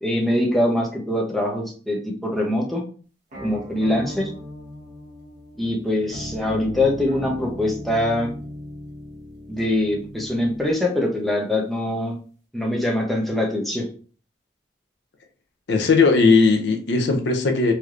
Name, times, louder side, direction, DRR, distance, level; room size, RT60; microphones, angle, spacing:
voice 1, 0.0-2.8 3.4-4.3 5.6-8.3 9.5-12.2 12.5-13.9, left 1 dB, ahead, 0.6 m, -23 dB
sound 1, 3.3-10.8, left 1 dB, 45° right, 1.0 m, -37 dB
voice 2, 15.7-17.7, left 4 dB, 65° left, 0.5 m, -18 dB
3.2 x 2.8 x 2.4 m
head